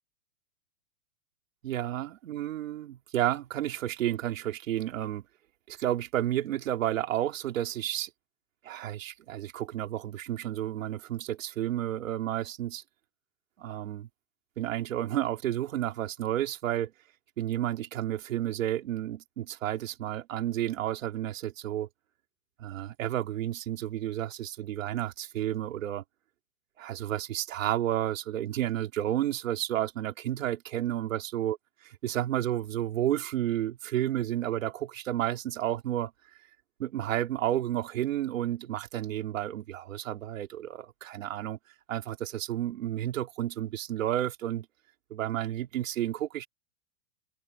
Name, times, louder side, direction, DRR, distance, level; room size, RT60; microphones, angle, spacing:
voice 1, 1.6-5.2 5.7-8.1 8.6-12.8 13.6-14.1 14.6-16.9 17.4-21.9 22.6-26.0 26.8-31.6 31.8-36.1 36.8-41.6 41.9-44.7 45.1-46.5, right 12 dB, 65° right, 3.3 m, -31 dB
supercardioid pair, 180°, 42 cm